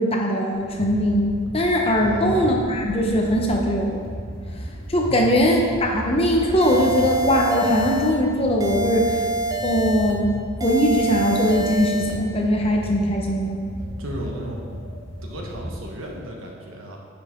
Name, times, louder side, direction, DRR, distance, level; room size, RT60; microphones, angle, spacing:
voice 1, 0.0-4.0 4.9-9.1 9.6-10.3 10.6-13.6, equal, 25° left, 0 dB, 0.9 m, -20 dB
sound 1, 0.5-16.2, equal, 60° left, 2.2 m, -35 dB
voice 2, 2.0-2.4 5.0-5.8 14.0-14.6 15.2-17.0, equal, 75° right, -1 dB, 1.3 m, -34 dB
sound 2, 6.6-8.2 8.6-10.2 10.6-12.2, right 1 dB, 15° right, 0.4 m, -27 dB
9.8 x 5.7 x 3.7 m, 2.1 s
head